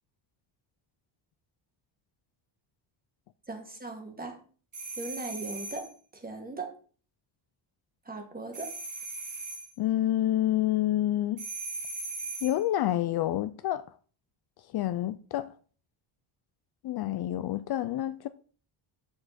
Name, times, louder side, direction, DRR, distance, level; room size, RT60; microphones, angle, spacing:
voice 1, 3.5-4.4 5.0-6.7 8.0-8.7, right 2 dB, 20° right, 1.8 m, -39 dB
sound 1, 4.7-5.9 8.5-9.7 11.4-12.6, right 3 dB, 35° right, 1.9 m, -38 dB
voice 2, 9.8-11.4 12.4-13.8 14.7-15.5 16.8-18.3, left 13 dB, 50° left, 0.5 m, -28 dB
6.7 x 6.6 x 4.1 m
cardioid pair, 125°, 49 cm